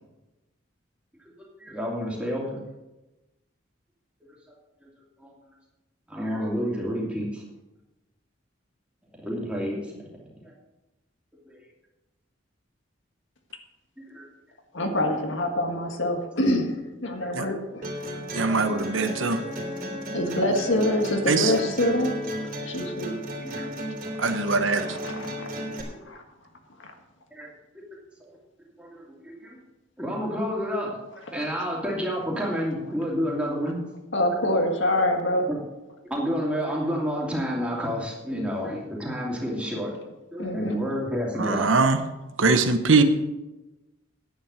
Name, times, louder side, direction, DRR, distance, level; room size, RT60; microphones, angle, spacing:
voice 1, 1.6-2.6 4.8-4.9 5.2-5.3 6.1-7.4 9.1-10.1 10.4-10.5 11.5-11.6 14.0-14.3 17.2-17.3 18.4-18.5 19.9-20.0 23.4-23.7 24.4-24.6 25.7-26.1 27.3-27.5 28.2-28.3 28.8-29.6 30.0-31.0 31.3-33.8 35.5-35.6 36.1-39.9 40.3-41.9, equal, 5° right, -3 dB, 2.7 m, -30 dB
voice 2, 14.7-17.9 20.1-22.3 22.6-23.1 24.1-24.3 24.6-25.5 26.0-26.2 26.8-26.9 31.3-31.4 34.1-35.5 40.4-40.8, left 1 dB, 70° left, 4 dB, 1.7 m, -26 dB
sound 1, 17.8-25.8, equal, 45° right, 3.3 m, -34 dB
voice 3, 18.3-19.4 21.3-21.5 24.2-24.8 41.4-42.0 42.4-43.0, right 4 dB, 80° right, 8 dB, 1.0 m, -21 dB
10.0 x 8.9 x 6.4 m, 1.0 s
head